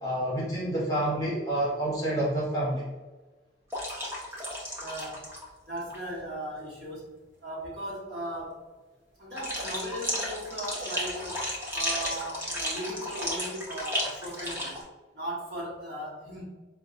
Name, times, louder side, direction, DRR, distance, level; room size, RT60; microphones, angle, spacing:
voice 1, 0.0-2.8, right 1 dB, 20° left, -6 dB, 0.9 m, -28 dB
sound 1, 3.7-5.5 5.8-6.0 9.4-14.8, equal, 10° right, 0.6 m, -33 dB
voice 2, 4.8-5.3 5.7-7.2 7.4-8.7 9.2-14.8 15.1-16.4, right 1 dB, 60° right, -6 dB, 1.2 m, -37 dB
4.3 x 2.2 x 2.5 m, 1.2 s
head